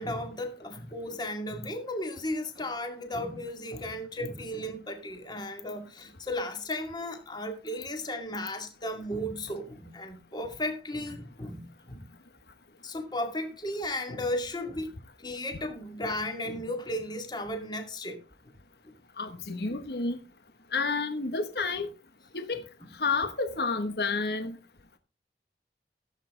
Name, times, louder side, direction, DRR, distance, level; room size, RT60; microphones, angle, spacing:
voice 1, 0.0-12.1 12.8-14.9 15.2-18.2, left 1 dB, 25° left, 2.2 m, -35 dB
voice 2, 19.2-20.2 20.7-21.9 22.3-22.6 22.9-24.6, left 4 dB, 65° left, 1.2 m, -30 dB
16.5 x 8.4 x 3.8 m
head